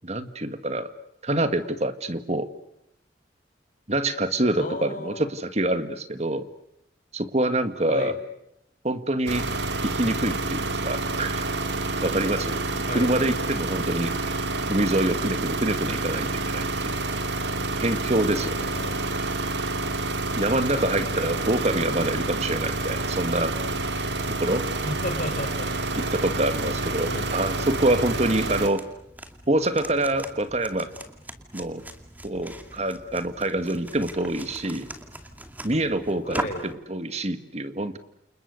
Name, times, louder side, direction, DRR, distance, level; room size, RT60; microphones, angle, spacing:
voice 1, 0.0-0.9 1.2-2.5 3.9-6.5 7.1-8.1 8.8-9.5 9.8-11.5 12.0-12.6 12.9-14.1 14.7-17.0 17.8-18.7 20.3-23.5 24.4-24.7 25.9-28.8 29.5-30.9 31.5-31.8 32.2-34.9 35.6-38.0, right 1 dB, 40° right, 10 dB, 1.9 m, -26 dB
voice 2, 4.6-5.3 7.9-8.2 12.9-13.3 18.2-19.3 20.8-21.5 24.8-25.8 27.0-27.4 36.2-36.7, left 1 dB, 45° left, 4 dB, 4.5 m, -35 dB
sound 1, 9.3-28.7, right 2 dB, 75° right, 2.3 m, -28 dB
sound 2, 28.4-36.7, right 1 dB, 10° right, 2.4 m, -40 dB
29.5 x 29.0 x 6.6 m, 0.80 s
head